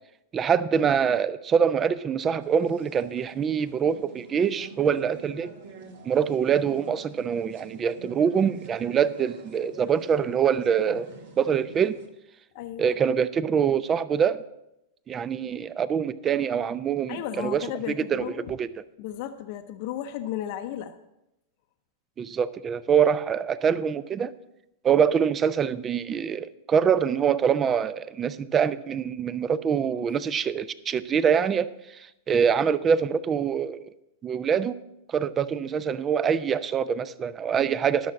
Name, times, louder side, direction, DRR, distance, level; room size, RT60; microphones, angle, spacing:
voice 1, 0.3-5.5 6.0-11.1 11.4-12.0 12.8-14.4 15.1-17.7 18.1-18.8 22.2-24.3 24.8-33.8 34.2-34.8 35.1-38.1, right 7 dB, 25° right, 16 dB, 0.5 m, -24 dB
sound 1, 2.4-12.1, right 4 dB, 65° right, 1.8 m, -47 dB
voice 2, 12.5-12.9 17.1-18.5 19.0-21.0, left 11 dB, 55° left, 7 dB, 0.7 m, -34 dB
11.5 x 6.4 x 7.1 m, 0.88 s
hypercardioid pair, 110°, 0 cm